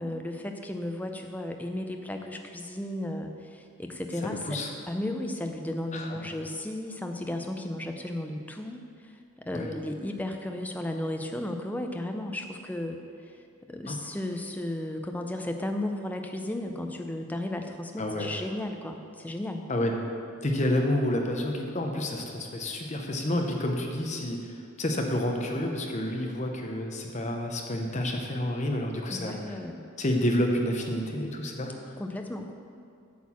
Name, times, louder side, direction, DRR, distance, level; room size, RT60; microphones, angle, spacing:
voice 1, 0.0-4.6 4.9-13.4 13.7-19.6 29.1-29.8 32.0-32.5, left 1 dB, 10° left, 4 dB, 0.4 m, -34 dB
voice 2, 4.2-4.7 5.9-6.3 9.5-9.7 13.9-14.0 18.0-18.3 19.7-20.0 20.4-29.6 30.0-31.7, left 1 dB, 35° left, 2 dB, 0.8 m, -29 dB
8.3 x 4.4 x 7.2 m, 2.4 s
head